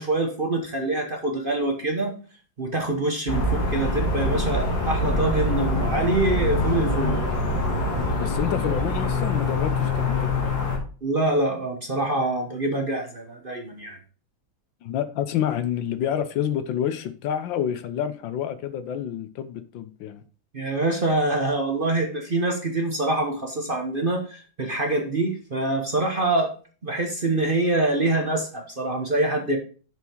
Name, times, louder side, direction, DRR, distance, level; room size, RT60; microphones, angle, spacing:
voice 1, 0.0-2.1 2.6-7.2 11.0-14.0 20.5-26.5 26.8-29.6, right 2 dB, 35° right, 1.0 m, -25 dB
sound 1, 3.3-10.8, left 2 dB, 50° left, 2.6 m, -24 dB
voice 2, 8.2-10.7 14.8-20.2, left 9 dB, 75° left, 1.4 m, -28 dB
7.0 x 6.1 x 4.5 m
omnidirectional pair, 2.1 m